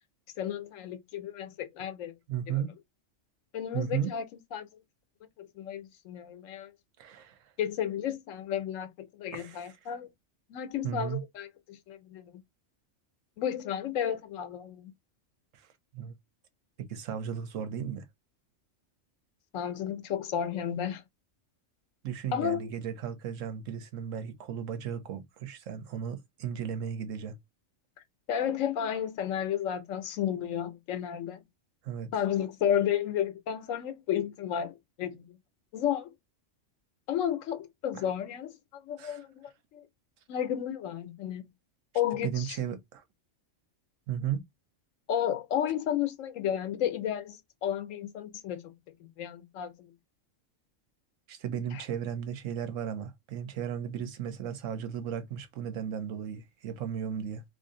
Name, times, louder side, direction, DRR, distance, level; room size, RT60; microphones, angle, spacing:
voice 1, 0.4-2.1 2.5-2.6 3.5-4.3 4.5-4.7 5.4-6.7 7.6-10.1 10.5-12.4 13.4-14.9 19.5-21.0 22.3-22.7 28.3-31.4 32.1-35.4 35.7-36.1 37.1-39.9 40.3-41.4 41.9-42.6 45.1-49.9 51.7-51.8, left 9 dB, 85° left, 1.1 m, -32 dB
voice 2, 2.3-2.7 3.7-4.1 7.0-7.4 9.3-9.7 10.8-11.2 15.5-15.7 15.9-16.2 16.8-18.1 22.0-27.4 31.8-32.1 37.9-38.0 39.0-39.2 42.2-43.0 44.1-44.4 51.3-57.4, right 8 dB, 80° right, 1.1 m, -35 dB
3.1 x 2.5 x 3.7 m
omnidirectional pair, 1.3 m